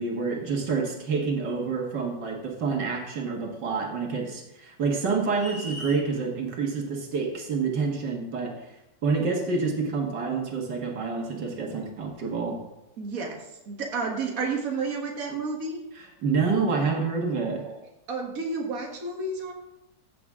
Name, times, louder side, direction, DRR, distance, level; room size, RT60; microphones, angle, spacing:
voice 1, 0.0-8.8 9.0-12.6 16.0-17.6, right 4 dB, 75° right, 1 dB, 2.2 m, -28 dB
sound 1, 5.3-6.1, left 1 dB, 35° left, 2.5 m, -39 dB
voice 2, 13.0-15.8 17.7-17.8 18.1-19.5, right 4 dB, 55° right, 0 dB, 1.8 m, -31 dB
14.5 x 7.1 x 3.6 m, 0.92 s
omnidirectional pair, 1.9 m